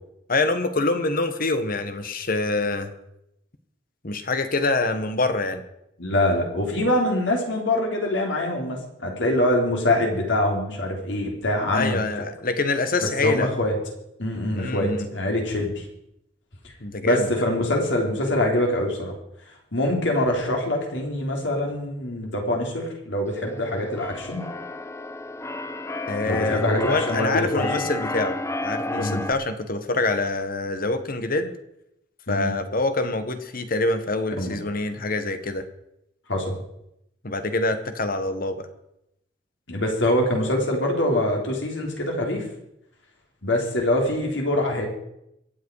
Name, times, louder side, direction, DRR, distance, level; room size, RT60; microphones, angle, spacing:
voice 1, 0.3-2.9 4.0-5.6 11.7-13.5 14.5-15.1 16.8-17.3 26.1-31.5 32.3-35.7 37.2-38.7, left 2 dB, 50° left, 9 dB, 1.5 m, -25 dB
voice 2, 6.0-12.0 13.0-13.8 14.2-15.8 17.0-19.1 19.7-24.4 26.2-27.7 29.0-29.2 32.3-32.5 34.4-34.5 36.3-36.6 39.7-42.4 43.4-44.9, left 1 dB, 80° left, 1 dB, 3.9 m, -24 dB
Keyboard (musical), 23.4-29.3, left 2 dB, 15° left, 0.7 m, -32 dB
24.0 x 8.2 x 4.9 m, 0.81 s
head